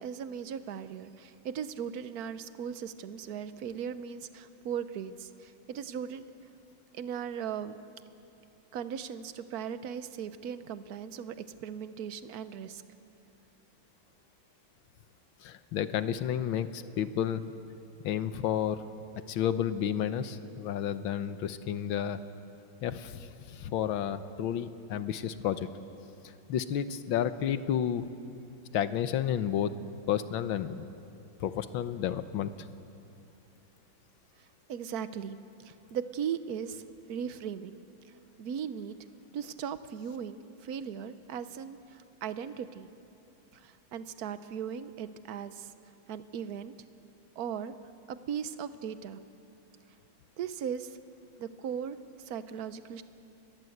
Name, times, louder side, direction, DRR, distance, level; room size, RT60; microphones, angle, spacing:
voice 1, 0.0-6.3 6.9-7.7 8.7-12.8 34.7-35.4 35.6-36.8 37.1-37.8 38.4-39.0 39.3-42.9 43.6-45.7 46.1-46.7 47.4-47.7 48.1-49.2 50.4-50.9 51.4-52.0 52.3-53.0, right 8 dB, 55° right, 12 dB, 1.2 m, -38 dB
voice 2, 15.4-17.4 18.0-18.8 19.3-22.2 22.8-25.7 26.5-28.1 28.7-29.7 30.1-30.9 31.4-32.5, left 9 dB, 80° left, 11 dB, 1.7 m, -31 dB
29.5 x 22.0 x 8.0 m, 2.8 s
omnidirectional pair, 2.2 m